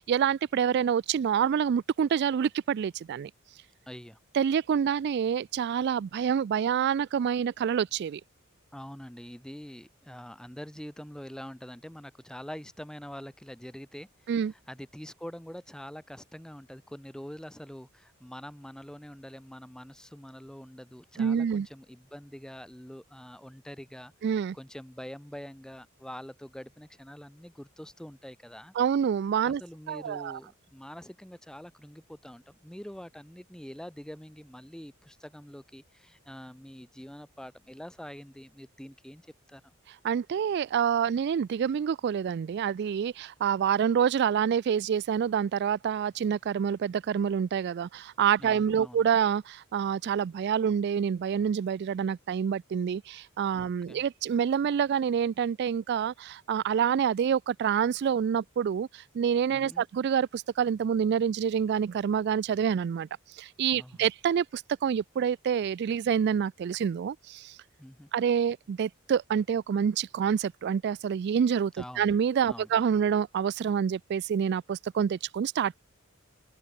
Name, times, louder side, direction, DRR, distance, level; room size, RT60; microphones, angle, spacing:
voice 1, 0.0-3.3 4.3-8.2 14.3-14.5 21.2-21.7 24.2-24.6 28.8-29.6 29.9-30.4 40.0-67.6 68.1-75.8, right 8 dB, 50° right, 0.3 m, -27 dB
voice 2, 3.9-4.2 8.7-28.7 29.4-39.8 48.4-49.0 53.5-54.0 59.5-59.8 63.7-64.1 67.8-68.1 71.8-72.1 72.5-72.7, equal, 5° left, 0.8 m, -45 dB
open air
head